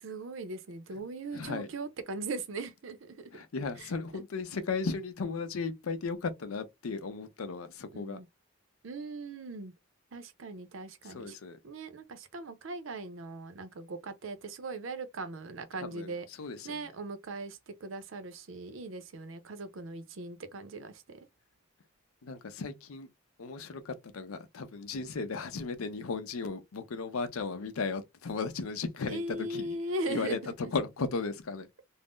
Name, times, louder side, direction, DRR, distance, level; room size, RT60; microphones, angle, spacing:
voice 1, 0.0-3.3 3.8-4.2 7.9-8.3 8.8-9.7 10.1-11.4 11.6-16.3 16.6-21.3 29.1-30.7, right 2 dB, 65° right, 0.6 m, -39 dB
voice 2, 1.3-1.7 3.3-8.2 11.1-11.6 15.8-16.1 16.4-16.8 22.2-23.1 23.4-29.8 30.1-30.4 30.7-31.7, left 4 dB, 90° left, 0.5 m, -35 dB
2.5 x 2.0 x 3.5 m
head